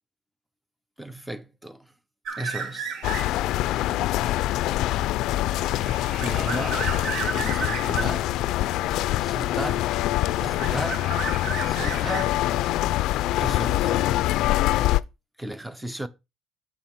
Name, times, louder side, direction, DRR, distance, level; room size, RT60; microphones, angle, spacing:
voice 1, 1.0-1.9 2.4-2.9 6.2-6.9 7.3-8.3 9.2-10.0 10.4-11.1 11.7-12.4 13.4-14.2 15.4-16.1, right 1 dB, 5° right, 0.6 m, -34 dB
sound 1, 2.3-3.5 4.0-8.2 9.2-10.0 10.3-12.7, right 5 dB, 60° right, 1.2 m, -34 dB
sound 2, 3.0-15.0, left 15 dB, 75° left, 0.3 m, -24 dB
7.2 x 5.5 x 4.4 m
cardioid pair, 135°, 0 cm